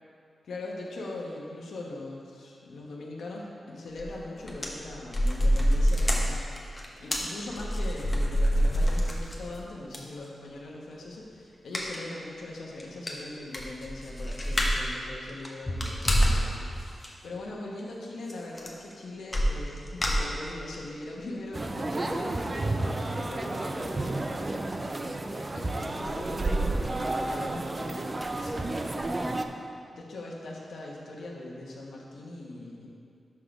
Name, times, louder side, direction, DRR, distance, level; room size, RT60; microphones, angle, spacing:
voice 1, 0.4-6.4 7.0-29.6 29.9-32.9, left 2 dB, 85° left, -2 dB, 1.0 m, -41 dB
sound 1, 4.0-4.2 4.4-9.6 9.9-10.0 11.7-12.0 12.4-12.5 12.8-12.9 13.1-14.9 15.3-16.5 16.8-17.1 18.3-18.4 18.6-18.9 19.3-20.8 21.2-21.3 21.6-21.7, equal, 20° left, 1.0 m, -26 dB
sound 2, 21.5-29.5, right 2 dB, 30° right, 0.4 m, -31 dB
5.8 x 5.0 x 6.0 m, 2.3 s
cardioid pair, 85°, 0 cm